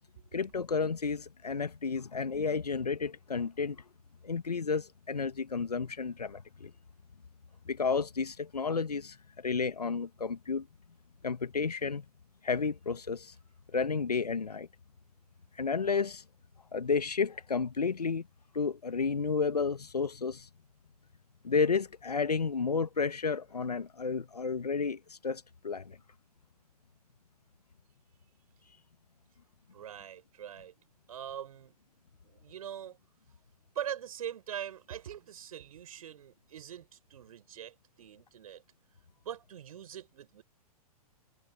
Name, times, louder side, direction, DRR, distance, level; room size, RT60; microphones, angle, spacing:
voice 1, 0.3-3.8 4.2-6.7 7.7-10.7 11.2-12.0 12.4-13.3 13.7-14.7 15.5-16.2 16.7-18.3 18.5-20.5 21.4-26.0, left 5 dB, 85° left, 1.3 m, -32 dB
voice 2, 29.7-30.7 31.1-31.7 32.2-33.0 33.7-38.6 39.2-40.4, right 9 dB, 65° right, 4.9 m, -42 dB
figure-of-eight pair, 110°, 20 cm